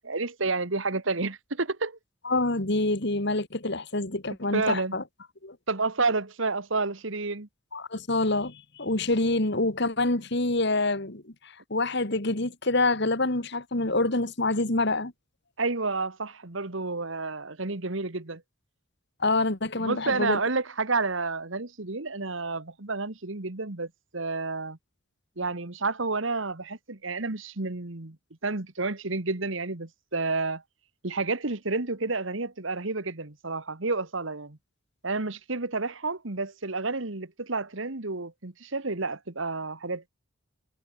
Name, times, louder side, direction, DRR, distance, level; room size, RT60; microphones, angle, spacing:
voice 1, 0.0-2.0 4.5-4.9 5.7-7.5 15.6-18.4 19.8-24.8 25.4-28.2 28.4-30.6 31.0-34.6 35.0-40.1, right 3 dB, 65° right, 1.7 m, -30 dB
voice 2, 2.2-5.0 5.4-5.6 7.7-15.1 19.2-20.4, left 2 dB, 55° left, 2.3 m, -26 dB
head